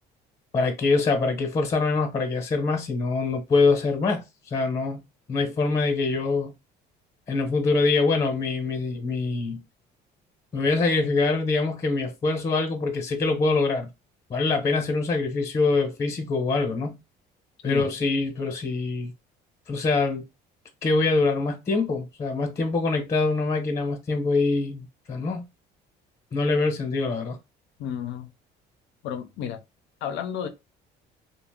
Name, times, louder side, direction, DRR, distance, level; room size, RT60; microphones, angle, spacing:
voice 1, 0.5-5.0 5.3-6.5 7.3-9.6 10.5-13.9 14.3-17.0 17.6-19.1 19.7-20.2 20.8-25.4 26.3-27.4, left 3 dB, 30° left, 0.8 m, -24 dB
voice 2, 27.8-28.3 29.0-29.6 30.0-30.5, left 8 dB, 75° left, 0.5 m, -31 dB
2.4 x 2.1 x 3.4 m
cardioid pair, 105°, 19 cm